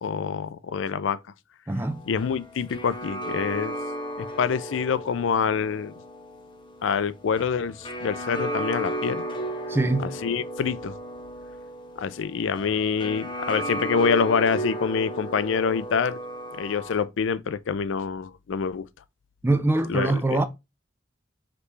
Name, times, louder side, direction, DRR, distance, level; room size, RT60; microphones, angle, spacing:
voice 1, 0.0-1.2 2.1-3.7 4.2-6.0 6.8-9.2 10.0-11.0 12.0-16.2 16.5-18.9 19.9-20.4, left 6 dB, 75° left, 0.4 m, -26 dB
voice 2, 1.7-2.0 9.7-10.1 19.4-20.4, right 2 dB, 10° right, 0.4 m, -23 dB
sound 1, 1.8-17.0, right 1 dB, 25° left, 0.8 m, -34 dB
5.0 x 3.2 x 3.3 m
head